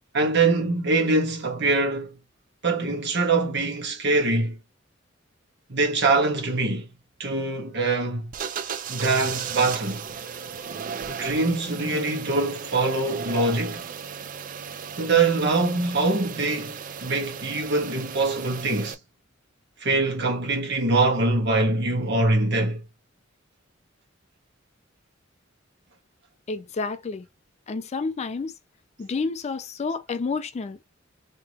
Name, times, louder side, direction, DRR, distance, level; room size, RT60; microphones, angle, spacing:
voice 1, 0.1-2.1 2.6-4.6 5.7-6.9 7.2-8.3 8.9-10.1 11.1-13.9 15.0-19.0 19.8-22.8, right 3 dB, 60° right, 1.4 m, -23 dB
sound 1, 8.3-18.9, right 7 dB, 45° right, 0.4 m, -35 dB
voice 2, 26.5-27.3 27.7-28.5 29.0-30.9, left 4 dB, 35° left, 0.4 m, -30 dB
3.4 x 2.8 x 2.9 m
head